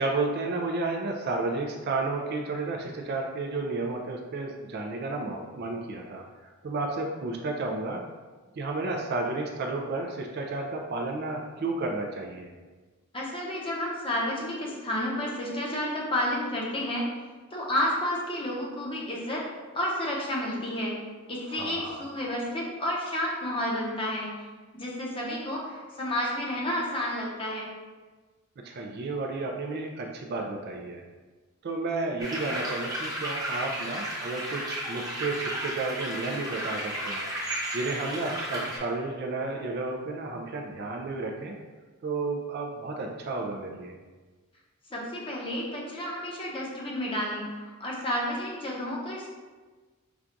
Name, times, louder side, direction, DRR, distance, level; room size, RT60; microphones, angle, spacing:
voice 1, 0.0-6.2 6.6-8.0 8.6-12.5 21.5-22.0 28.6-31.0 31.6-37.3 37.7-41.6 42.0-43.9, right 3 dB, 45° right, 2 dB, 0.4 m, -32 dB
voice 2, 13.1-17.2 17.5-19.5 19.7-21.0 21.3-24.4 24.7-27.7 44.9-49.3, left 1 dB, 25° left, -3 dB, 0.7 m, -31 dB
sound 1, 32.2-38.8, right 1 dB, 15° right, 0.8 m, -33 dB
5.8 x 2.3 x 2.5 m, 1.3 s
head